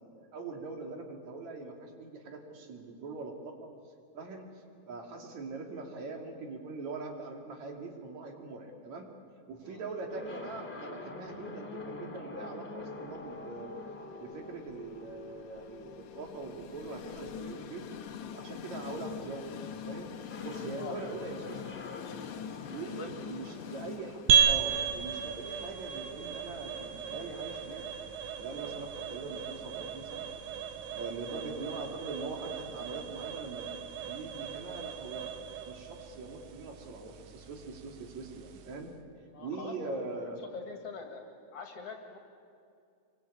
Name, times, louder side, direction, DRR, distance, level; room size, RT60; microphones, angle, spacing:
voice 1, 0.0-3.7 4.1-4.5 4.9-9.1 9.5-13.8 14.2-17.9 18.3-20.1 20.4-21.8 22.7-27.8 28.4-30.3 30.9-33.7 34.1-35.3 35.7-38.9 39.4-40.4, right 3 dB, 65° right, 2 dB, 3.8 m, -42 dB
sound 1, 10.1-25.9, left 3 dB, 20° left, 3.1 m, -47 dB
Train, 13.1-31.2, left 8 dB, 70° left, 2.5 m, -47 dB
sound 2, 24.3-38.9, right 7 dB, 80° right, 2.8 m, -34 dB
voice 2, 39.3-40.0 40.5-41.2 41.5-42.2, left 4 dB, 50° left, 3 dB, 2.9 m, -43 dB
26.0 x 23.5 x 8.6 m, 2.4 s
omnidirectional pair, 3.6 m